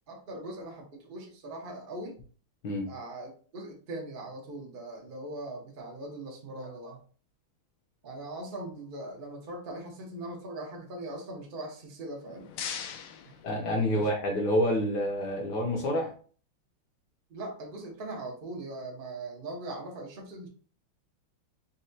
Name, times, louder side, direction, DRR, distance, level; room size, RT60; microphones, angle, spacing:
voice 1, 0.1-2.2 2.9-7.0 8.0-12.5 13.2-13.3 13.9-14.1 17.3-20.5, right 1 dB, 70° right, -1 dB, 0.5 m, -40 dB
sound 1, 12.0-14.2, left 8 dB, 85° left, 1.5 m, -41 dB
voice 2, 13.4-16.1, equal, 65° left, 1 dB, 1.1 m, -28 dB
4.1 x 2.2 x 2.6 m, 0.41 s
omnidirectional pair, 2.4 m